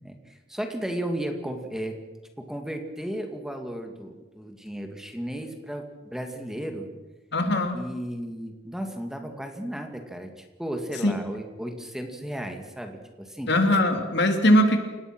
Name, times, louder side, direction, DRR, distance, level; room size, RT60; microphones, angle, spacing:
voice 1, 0.0-1.9 2.4-6.9 7.7-13.5, right 1 dB, 5° right, 4 dB, 2.2 m, -34 dB
voice 2, 7.3-7.8 11.0-11.1 13.5-14.8, left 1 dB, 60° left, 5 dB, 3.0 m, -20 dB
29.5 x 18.5 x 6.2 m, 1.2 s
head